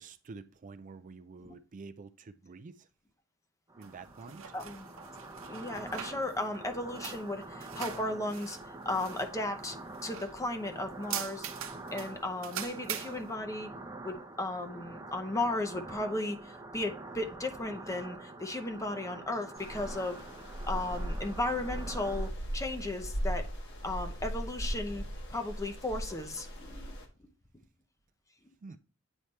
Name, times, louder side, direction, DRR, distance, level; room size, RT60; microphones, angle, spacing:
voice 1, 0.0-2.9 3.8-4.4 28.6-28.8, right 4 dB, 40° right, 0.4 m, -48 dB
sound 1, 3.7-22.3, right 2 dB, 15° right, 0.7 m, -46 dB
sound 2, 3.8-13.3, right 9 dB, 65° right, 0.9 m, -44 dB
voice 2, 4.5-4.9 5.5-8.6 8.8-9.8 10.0-11.5 11.9-13.7 14.0-20.2 20.7-23.4 23.8-25.0 25.3-27.0, left 2 dB, 15° left, 0.7 m, -35 dB
sound 3, 19.6-27.0, equal, 55° left, 1.5 m, -38 dB
8.9 x 3.3 x 4.2 m
head